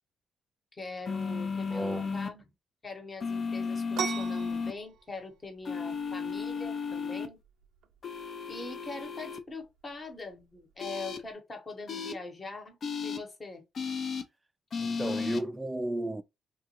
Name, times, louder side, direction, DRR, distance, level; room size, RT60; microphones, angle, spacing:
voice 1, 0.7-2.4 2.8-7.4 8.5-13.6, left 3 dB, 30° left, 1.0 m, -42 dB
sound 1, 1.1-2.3 3.2-4.7 5.7-7.3 8.0-9.4 10.8-11.2 11.9-12.1 12.8-13.2 13.8-14.2 14.7-15.4, left 5 dB, 50° left, 0.5 m, -34 dB
voice 2, 1.7-2.2 14.8-16.2, right 1 dB, 15° right, 0.3 m, -34 dB
sound 2, 3.9-11.3, right 8 dB, 75° right, 0.4 m, -42 dB
2.9 x 2.4 x 2.9 m
cardioid pair, 90°, 0 cm